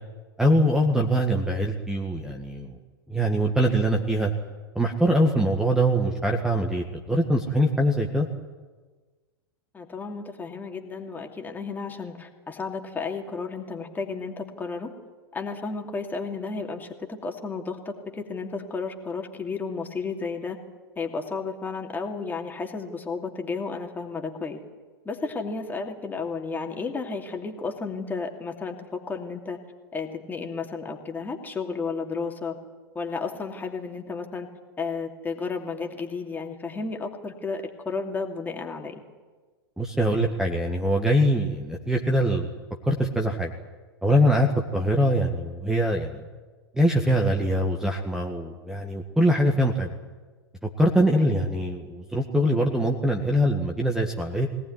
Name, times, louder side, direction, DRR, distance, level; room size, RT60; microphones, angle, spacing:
voice 1, 0.4-2.7 3.1-4.3 4.8-8.3 39.8-42.5 42.8-43.5 44.0-46.2 46.7-49.9 50.6-54.5, equal, 5° right, 2 dB, 1.9 m, -23 dB
voice 2, 9.7-14.9 15.3-20.6 21.0-24.6 25.0-29.6 29.9-32.6 32.9-34.5 34.8-39.0 51.1-51.5, left 4 dB, 15° left, 3 dB, 2.8 m, -33 dB
21.5 x 18.5 x 9.7 m, 1.3 s
figure-of-eight pair, 100°, 13 cm